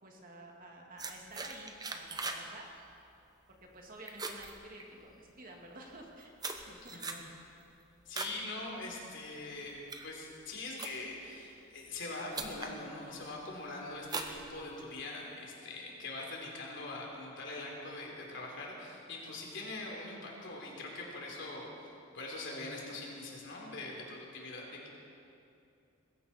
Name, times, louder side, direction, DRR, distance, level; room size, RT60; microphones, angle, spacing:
voice 1, 0.0-2.8 3.5-6.3 6.7-6.9, right 1 dB, 45° right, 0 dB, 2.3 m, -51 dB
sound 1, 1.0-2.5 2.8-3.1 3.5-3.8 4.1-5.3 5.9-8.4 8.8-9.1 9.6-11.3 12.0-12.1 12.3-12.8 13.2-13.6 14.0-15.0, right 3 dB, 20° right, 0.9 m, -41 dB
voice 2, 6.7-7.2 8.1-24.9, left 2 dB, 60° left, -1 dB, 3.5 m, -43 dB
20.5 x 16.0 x 4.4 m, 2.7 s
head